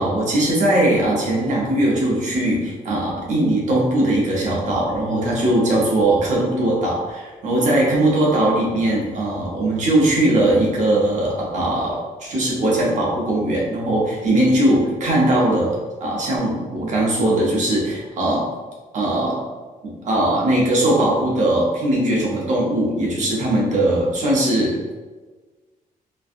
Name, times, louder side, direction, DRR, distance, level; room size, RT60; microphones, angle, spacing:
voice 1, 0.0-18.5 18.9-19.4 19.8-24.9, right 1 dB, 55° right, -4 dB, 0.9 m, -20 dB
3.0 x 2.5 x 2.6 m, 1.3 s
cardioid pair, 180°, 15 cm